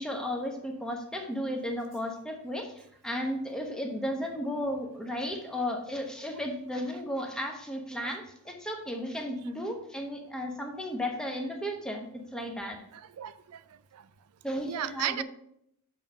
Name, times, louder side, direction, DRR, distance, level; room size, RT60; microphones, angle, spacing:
voice 1, 0.0-2.7 3.0-12.8 14.4-15.2, equal, 5° left, 1 dB, 0.9 m, -34 dB
voice 2, 12.9-14.1 14.7-15.2, right 11 dB, 85° right, 14 dB, 0.4 m, -36 dB
7.1 x 3.6 x 5.4 m, 0.72 s
head